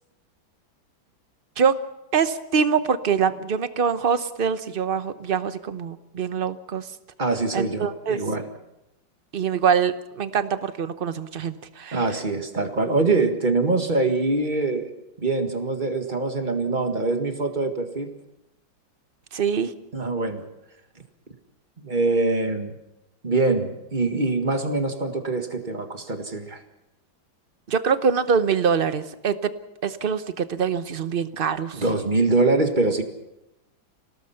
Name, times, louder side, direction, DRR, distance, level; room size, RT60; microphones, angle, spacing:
voice 1, 2.1-6.9 7.5-8.2 9.3-12.0 19.3-19.7 27.7-29.5 29.8-31.8, right 6 dB, 45° right, 12 dB, 0.7 m, -24 dB
voice 2, 7.2-8.5 11.9-14.9 15.2-18.1 19.9-20.4 21.8-22.7 23.2-26.6 31.7-33.0, right 3 dB, 25° right, 6 dB, 1.8 m, -24 dB
27.5 x 18.0 x 5.8 m, 0.90 s
omnidirectional pair, 2.1 m